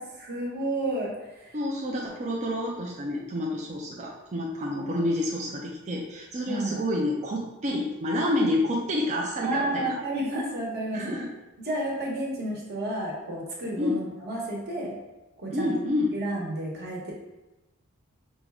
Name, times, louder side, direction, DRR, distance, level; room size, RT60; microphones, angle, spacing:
voice 1, 0.0-1.6 4.9-5.0 6.5-6.8 9.4-11.2 11.6-14.9 15.4-15.7 16.1-17.1, right 1 dB, 50° right, -2 dB, 1.1 m, -31 dB
voice 2, 1.5-9.9 10.9-11.3 13.8-14.0 15.5-16.1, left 1 dB, 35° right, -3 dB, 0.5 m, -28 dB
5.1 x 2.3 x 3.4 m, 1.0 s
head